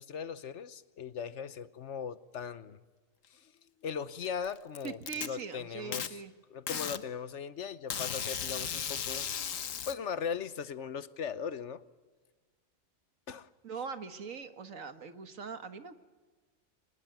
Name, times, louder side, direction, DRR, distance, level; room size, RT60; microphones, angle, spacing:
voice 1, 0.0-2.8 3.3-3.5 3.8-6.2 6.5-9.3 9.9-11.8 13.3-13.5, left 7 dB, 65° left, 15 dB, 1.2 m, -39 dB
Packing tape duct tape, 4.2-5.3 5.9-6.1 6.7-7.0 7.9-9.9, left 8 dB, 80° left, 1.4 m, -36 dB
voice 2, 4.8-6.3 13.6-15.9, right 5 dB, 85° right, 10 dB, 2.0 m, -41 dB
24.5 x 20.5 x 9.3 m, 1.3 s
omnidirectional pair, 1.3 m